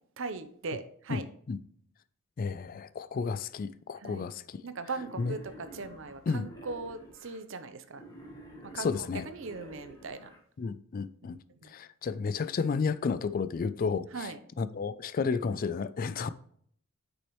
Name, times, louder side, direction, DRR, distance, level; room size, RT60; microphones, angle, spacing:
voice 1, 0.2-1.3 4.0-4.2 4.6-8.0 8.6-8.9 9.2-10.3 11.6-11.7 14.1-14.4, right 4 dB, 60° right, 0.7 m, -39 dB
voice 2, 1.1-1.6 2.4-4.6 5.2-5.4 6.3-6.5 8.7-9.3 10.6-11.4 11.6-14.3 14.6-16.3, left 5 dB, 40° left, 0.3 m, -32 dB
Wild animals, 4.9-7.4 7.9-10.4, right 1 dB, 15° left, 1.6 m, -50 dB
8.2 x 6.3 x 3.1 m
head